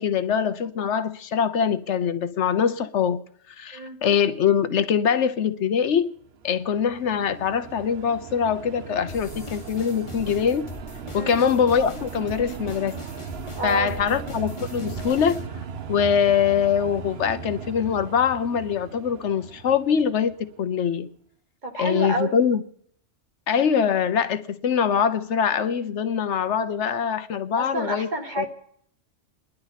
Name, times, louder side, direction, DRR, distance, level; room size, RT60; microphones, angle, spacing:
voice 1, 0.0-3.2 3.6-6.1 6.4-10.6 11.1-13.0 13.6-15.4 15.9-21.1 21.8-22.6 23.5-28.5, left 7 dB, 70° left, 1.0 m, -23 dB
sound 1, 6.2-20.7, right 6 dB, 60° right, 1.0 m, -38 dB
sound 2, 9.1-15.5, left 3 dB, 25° left, 1.0 m, -41 dB
voice 2, 11.1-11.4 13.5-14.0 16.1-16.2 21.6-22.5 27.6-28.5, right 1 dB, 40° right, 1.7 m, -29 dB
29.0 x 11.0 x 4.0 m
omnidirectional pair, 1.2 m